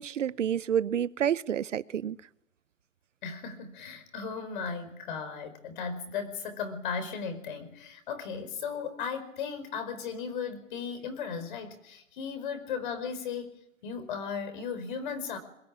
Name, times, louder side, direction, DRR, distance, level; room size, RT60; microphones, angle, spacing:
voice 1, 0.0-2.2, right 9 dB, 70° right, 0.9 m, -29 dB
voice 2, 3.2-13.6 13.8-15.4, left 6 dB, 40° left, 4.9 m, -36 dB
22.0 x 21.0 x 9.8 m
hypercardioid pair, 160°, 39 cm